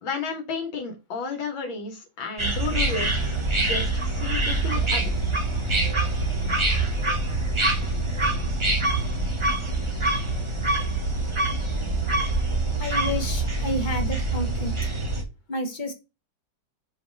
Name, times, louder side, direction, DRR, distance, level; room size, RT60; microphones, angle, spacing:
voice 1, 0.0-5.1, left 5 dB, 75° left, 4 dB, 2.2 m, -32 dB
sound 1, 2.4-15.2, right 2 dB, 20° right, 0.8 m, -25 dB
voice 2, 12.8-14.7 15.5-15.9, left 1 dB, 40° left, 5 dB, 0.7 m, -30 dB
5.6 x 3.3 x 5.2 m, 0.26 s
omnidirectional pair, 2.2 m